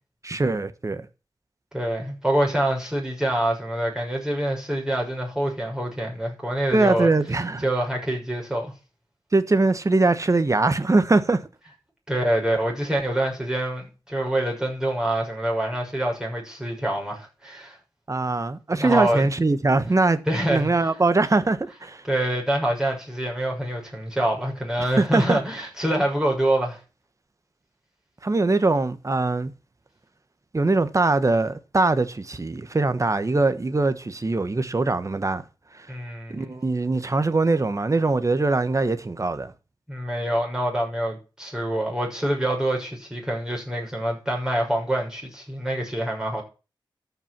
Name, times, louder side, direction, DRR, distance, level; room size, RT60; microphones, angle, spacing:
voice 1, 0.2-1.1 6.7-7.6 9.3-11.4 18.1-20.2 20.5-22.0 25.0-25.4 28.2-29.5 30.5-35.4 35.7-35.9 36.3-39.5, right 3 dB, 40° right, 1.4 m, -22 dB
voice 2, 1.7-7.1 7.6-8.7 12.1-17.8 18.7-19.3 20.3-20.7 22.0-26.8 35.9-36.5 39.9-46.4, right 1 dB, 5° right, 6.7 m, -26 dB
13.5 x 5.9 x 7.6 m
wide cardioid pair, 75°, 9 cm